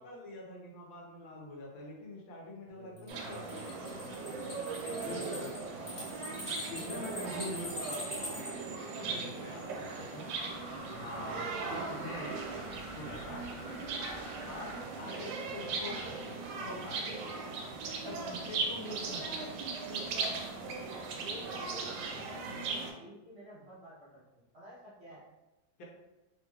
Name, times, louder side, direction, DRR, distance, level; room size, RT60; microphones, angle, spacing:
voice 1, 0.0-4.6 5.0-5.5 6.3-8.2 9.0-10.3 10.9-12.4 12.9-13.4 14.4-17.2 18.0-19.7 25.8-25.9, left 1 dB, 80° left, -2 dB, 1.5 m, -45 dB
voice 2, 2.7-3.6 4.8-6.2 7.2-7.8 8.9-10.1 13.5-13.7 17.5-17.8 21.2-24.2 24.5-25.2, right 1 dB, 45° right, -10 dB, 0.9 m, -50 dB
sound 1, 3.0-8.5, left 1 dB, 30° left, 0.8 m, -43 dB
sound 2, 3.1-22.9, right 4 dB, 80° right, 1.3 m, -39 dB
sound 3, 10.3-14.8, equal, 60° left, 0.7 m, -48 dB
3.5 x 2.9 x 2.3 m, 1.0 s
omnidirectional pair, 2.1 m